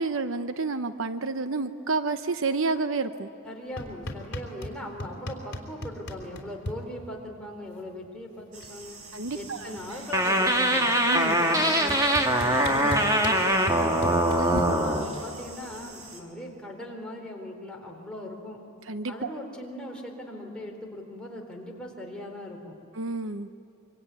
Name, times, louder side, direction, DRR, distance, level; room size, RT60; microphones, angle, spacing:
voice 1, 0.0-3.3 9.1-9.8 11.0-11.4 14.4-14.6 18.9-19.3 22.9-23.5, right 3 dB, 65° right, 10 dB, 0.8 m, -30 dB
voice 2, 3.4-9.0 9.3-10.9 11.2-14.3 14.7-18.6 19.1-22.8, left 1 dB, 5° left, -1 dB, 3.9 m, -40 dB
sound 1, 3.8-4.7 5.0-6.8 8.0-8.1 8.4-8.8 9.1-10.4 11.3-11.4 11.9-14.6, left 1 dB, 50° left, 3.7 m, -36 dB
sound 2, 8.5-16.2, right 3 dB, 90° right, 4.2 m, -46 dB
sound 3, 10.1-15.1, right 1 dB, 15° right, 2.0 m, -23 dB
25.5 x 24.5 x 9.3 m, 2.8 s
head